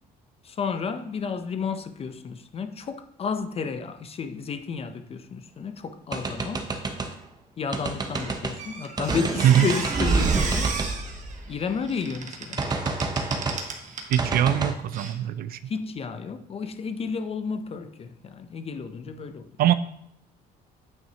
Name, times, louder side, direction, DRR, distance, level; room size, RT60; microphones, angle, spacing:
voice 1, 0.4-6.7 7.6-10.7 11.5-12.6 15.7-19.5, left 5 dB, 35° left, 0.5 m, -32 dB
sound 1, 6.1-7.1 7.7-8.6 9.0-11.9 12.6-13.7 14.2-14.7, right 3 dB, 25° right, 0.8 m, -27 dB
Squeak, 8.1-14.3 14.9-15.1, right 4 dB, 45° right, 1.2 m, -35 dB
voice 2, 14.1-15.6 19.6-19.7, right 11 dB, 60° right, 0.4 m, -21 dB
9.2 x 5.6 x 2.8 m
cardioid pair, 110°, 17 cm